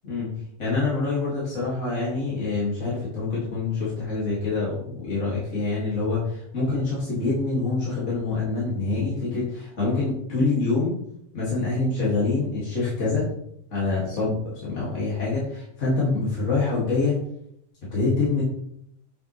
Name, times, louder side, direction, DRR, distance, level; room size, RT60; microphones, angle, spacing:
voice 1, 0.0-0.3 0.6-11.0 11.3-13.3 13.7-14.4 14.6-17.1 17.9-18.4, left 3 dB, 55° left, -8 dB, 2.4 m, -25 dB
7.3 x 5.5 x 3.1 m, 0.72 s
omnidirectional pair, 1.5 m